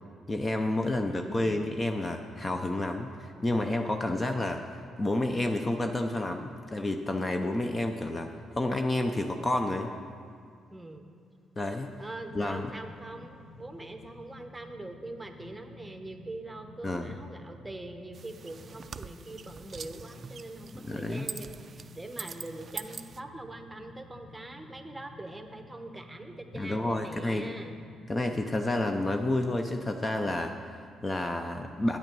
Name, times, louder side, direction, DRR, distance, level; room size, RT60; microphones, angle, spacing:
voice 1, 0.3-4.7 5.0-9.9 11.6-11.9 12.3-12.7 16.8-17.1 20.8-21.3 26.5-27.5 28.1-32.0, left 2 dB, 25° left, 5 dB, 0.5 m, -30 dB
voice 2, 1.2-1.7 10.7-11.1 12.0-27.7, right 2 dB, 15° right, 6 dB, 0.9 m, -43 dB
sound 1, 12.0-28.9, left 2 dB, 90° left, 1.4 m, -52 dB
sound 2, 18.1-23.2, right 6 dB, 45° right, 0.3 m, -44 dB
8.9 x 8.2 x 5.3 m, 2.2 s
cardioid pair, 90°, 0 cm